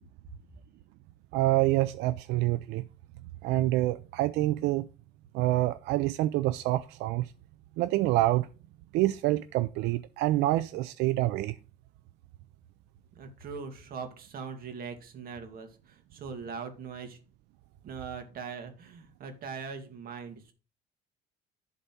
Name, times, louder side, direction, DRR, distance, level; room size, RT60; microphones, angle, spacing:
voice 1, 1.3-2.8 3.4-4.9 5.3-7.3 7.8-8.5 8.9-11.6, right 16 dB, 90° right, 0.4 m, -27 dB
voice 2, 13.2-17.2 17.8-20.5, right 5 dB, 60° right, 2.1 m, -41 dB
11.0 x 4.1 x 5.9 m
cardioid pair, 110°, 17 cm